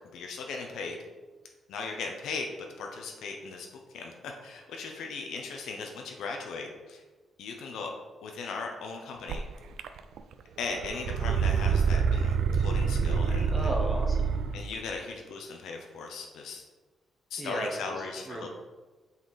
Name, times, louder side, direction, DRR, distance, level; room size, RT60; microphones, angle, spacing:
voice 1, 0.1-1.0 1.7-2.5 2.8-3.7 3.9-7.0 7.4-7.9 8.2-9.4 10.6-13.7 14.5-16.6 17.3-18.5, left 4 dB, 75° left, 2 dB, 0.8 m, -38 dB
sound 1, 9.3-9.4 9.8-10.3 10.6-14.6, right 6 dB, 65° right, 0.4 m, -26 dB
voice 2, 13.5-14.3 17.4-18.5, right 1 dB, 15° right, -1 dB, 1.0 m, -35 dB
7.7 x 4.2 x 4.2 m, 1.3 s
cardioid pair, 175°, 0 cm